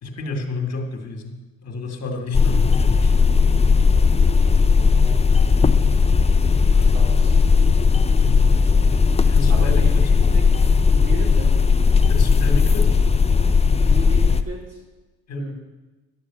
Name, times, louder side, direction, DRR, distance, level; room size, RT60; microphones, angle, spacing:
voice 1, 0.0-3.2 8.2-8.5 9.3-9.9 12.0-12.9 15.3-15.4, left 2 dB, 55° left, 4 dB, 2.0 m, -30 dB
sound 1, 2.3-14.4, left 5 dB, 20° left, 0.6 m, -16 dB
voice 2, 4.9-5.5 6.7-7.4 9.5-10.0 10.3-10.4 11.0-11.5 13.8-14.8 15.4-15.5, right 2 dB, 55° right, -2 dB, 4.3 m, -35 dB
11.5 x 7.1 x 7.5 m, 1.2 s
cardioid pair, 90°, 30 cm